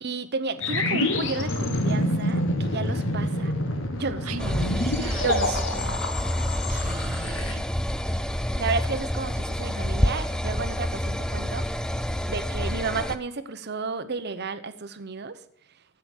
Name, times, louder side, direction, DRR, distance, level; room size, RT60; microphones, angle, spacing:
voice 1, 0.0-3.5 4.0-4.7 5.2-6.0 8.6-11.7 12.3-15.4, right 4 dB, 50° right, 11 dB, 0.8 m, -32 dB
sound 1, 0.6-7.5, left 1 dB, 60° left, 1.6 m, -27 dB
voice 2, 4.2-5.6 6.7-7.6, right 6 dB, 80° right, 11 dB, 0.7 m, -38 dB
sound 2, 4.4-13.2, equal, 5° left, 0.4 m, -28 dB
15.0 x 5.8 x 7.5 m, 0.67 s
head